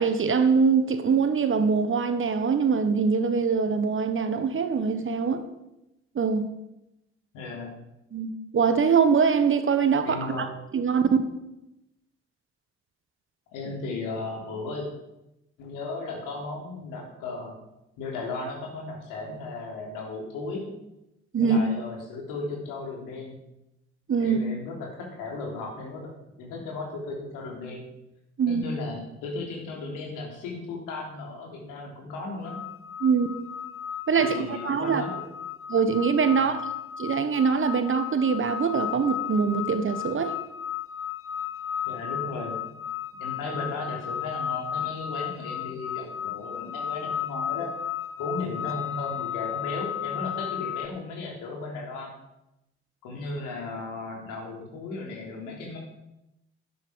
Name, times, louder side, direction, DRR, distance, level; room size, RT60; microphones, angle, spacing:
voice 1, 0.0-5.5 6.1-6.5 8.1-10.5 10.7-11.3 21.3-21.6 24.1-24.4 28.4-28.6 33.0-33.3 34.1-35.0 35.7-36.6 37.0-40.3, right 5 dB, 35° right, 10 dB, 1.5 m, -23 dB
voice 2, 7.3-7.7 10.0-10.5 13.5-14.9 15.6-17.5 18.0-20.7 21.4-23.4 24.2-26.1 26.4-27.8 28.5-32.6 34.1-35.2 36.3-36.5 41.8-42.5 43.2-47.7 48.2-52.1 53.0-55.8, left 3 dB, 65° left, 0 dB, 3.6 m, -35 dB
sound 1, 32.4-50.9, left 9 dB, 40° left, 1.2 m, -34 dB
12.0 x 10.5 x 5.3 m, 0.89 s
figure-of-eight pair, 50°, 34 cm